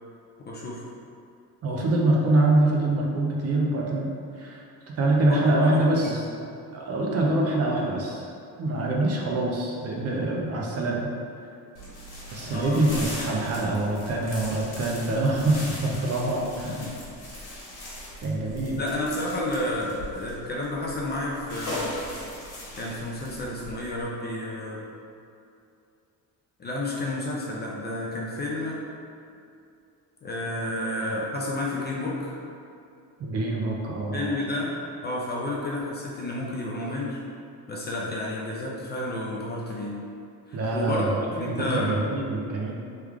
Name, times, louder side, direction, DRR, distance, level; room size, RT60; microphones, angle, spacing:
voice 1, 0.4-0.9 5.3-5.5 5.7-6.1 12.5-12.9 16.6-17.0 17.4-17.5 18.8-22.0 22.8-24.9 26.6-28.8 30.2-32.3 34.1-34.8 35.0-37.2 37.7-40.0 40.5-42.1, left 1 dB, 30° left, -4 dB, 0.4 m, -31 dB
voice 2, 1.6-6.2 6.7-8.3 8.6-11.1 12.3-16.8 18.2-18.8 33.2-34.3 40.5-42.7, right 2 dB, 40° right, -2 dB, 0.5 m, -25 dB
sound 1, 11.7-24.0, left 1 dB, 80° left, 1.3 m, -39 dB
3.2 x 2.3 x 3.4 m, 2.5 s
cardioid pair, 130°, 37 cm